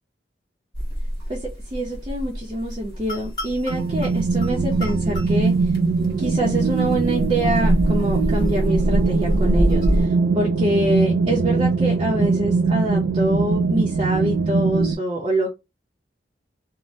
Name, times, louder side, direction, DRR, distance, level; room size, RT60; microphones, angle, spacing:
sound 1, 0.7-10.1, equal, 25° left, 1.2 m, -26 dB
voice 1, 1.7-5.5 6.2-15.5, right 1 dB, 30° right, 0.6 m, -25 dB
sound 2, 3.7-15.0, right 4 dB, 70° right, 0.3 m, -21 dB
2.7 x 2.0 x 3.0 m
head